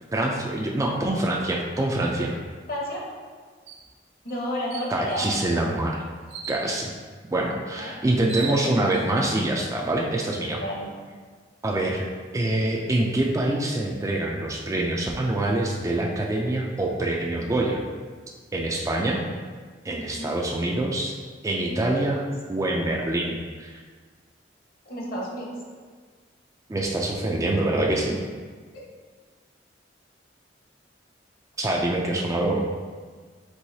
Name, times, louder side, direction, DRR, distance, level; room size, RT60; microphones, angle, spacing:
voice 1, 0.1-2.4 4.9-6.0 6.5-6.9 7.3-10.6 11.6-12.1 12.3-17.8 18.5-19.2 19.8-21.1 21.4-22.2 22.5-23.8 26.7-28.2 31.6-32.6, right 1 dB, 20° right, -1 dB, 0.3 m, -25 dB
voice 2, 2.7-3.0 4.2-5.7 7.7-7.9 8.3-8.6 10.4-10.9 11.8-12.0 20.0-20.3 21.6-22.1 24.8-25.6 28.7-28.8, equal, 55° left, -3 dB, 1.1 m, -32 dB
sound 1, 3.7-3.9 4.3-4.4 4.7-5.3 6.3-6.7 7.8-7.9 8.1-9.0, right 4 dB, 65° right, 0.6 m, -36 dB
4.6 x 3.8 x 2.7 m, 1.5 s
head